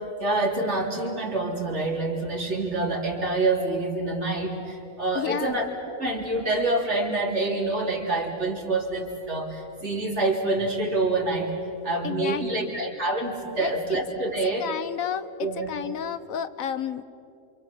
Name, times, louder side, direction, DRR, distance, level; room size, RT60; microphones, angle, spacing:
voice 1, 0.0-5.7 6.0-11.6 11.8-14.7 15.4-15.8, right 2 dB, 55° right, 1 dB, 3.6 m, -27 dB
voice 2, 5.1-5.6 12.0-12.8 13.6-14.0 14.6-17.0, left 8 dB, 75° left, 13 dB, 1.3 m, -31 dB
28.0 x 27.0 x 7.4 m, 2.6 s
omnidirectional pair, 1.5 m